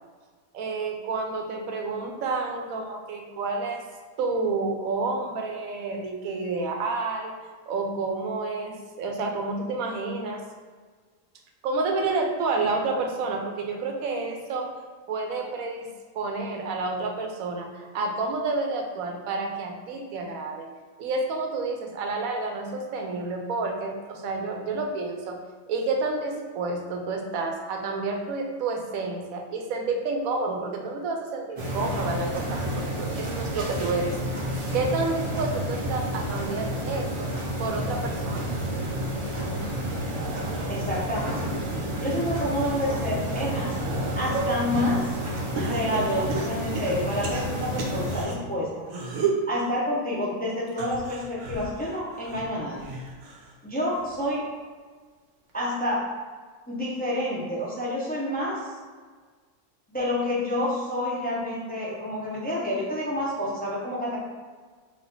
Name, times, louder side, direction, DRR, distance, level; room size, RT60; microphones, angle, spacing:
voice 1, 0.5-3.8 4.2-7.3 7.7-10.4 11.6-14.7 15.1-15.9 16.1-20.7 21.0-25.4 25.7-34.2 34.4-37.3 37.6-38.5, right 3 dB, 85° right, 2 dB, 1.1 m, -29 dB
sound 1, 31.6-48.2, equal, 50° right, 0.3 m, -30 dB
sound 2, 39.9-42.2 42.7-44.7 45.6-48.3 48.8-49.5 50.7-53.6 53.9-54.3 55.5-55.6, right 4 dB, 65° right, 1.0 m, -34 dB
voice 2, 40.7-41.6 42.0-43.8 44.1-45.2 45.5-48.9 49.5-52.9 53.6-54.4 55.5-56.0 56.7-58.7 59.9-64.2, left 1 dB, 10° left, -6 dB, 0.6 m, -28 dB
4.2 x 2.5 x 4.0 m, 1.5 s
omnidirectional pair, 1.4 m